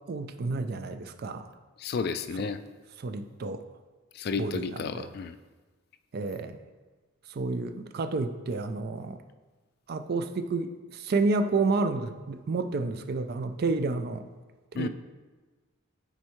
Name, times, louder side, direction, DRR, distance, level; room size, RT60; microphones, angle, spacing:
voice 1, 0.1-1.5 2.4-2.5 3.0-3.6 4.4-5.1 6.1-6.6 7.3-9.2 9.9-14.3 14.7-14.9, right 3 dB, 50° right, 9 dB, 0.4 m, -30 dB
voice 2, 1.8-2.6 4.1-5.4 14.8-14.9, left 5 dB, 50° left, 11 dB, 0.3 m, -32 dB
9.6 x 4.3 x 3.1 m, 1.3 s
head